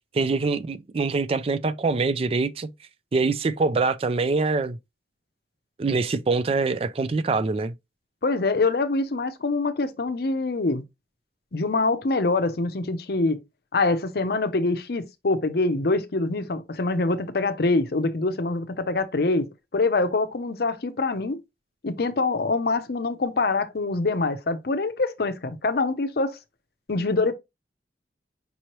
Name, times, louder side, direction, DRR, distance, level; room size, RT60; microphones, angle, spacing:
voice 1, 0.1-2.7 3.1-4.8 5.8-7.7, right 3 dB, 35° right, 0.3 m, -24 dB
voice 2, 8.2-10.8 11.5-13.4 13.7-21.4 21.8-26.4 26.9-27.3, left 3 dB, 60° left, 0.6 m, -25 dB
5.4 x 3.0 x 2.9 m
head